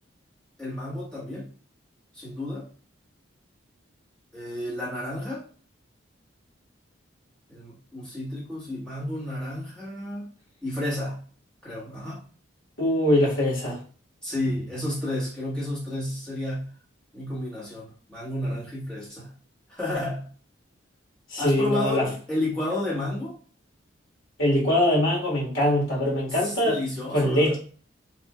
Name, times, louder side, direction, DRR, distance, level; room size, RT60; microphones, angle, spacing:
voice 1, 0.6-1.5 2.1-2.7 4.3-5.5 7.5-10.3 10.6-11.2 11.6-12.2 14.2-16.7 17.1-19.3 19.7-20.3 21.4-23.3 26.3-27.6, left 1 dB, 5° left, -8 dB, 1.4 m, -31 dB
voice 2, 12.8-13.8 21.3-22.0 24.4-26.8 27.1-27.6, left 1 dB, 85° left, -3 dB, 1.7 m, -22 dB
4.9 x 2.6 x 2.3 m, 0.40 s
head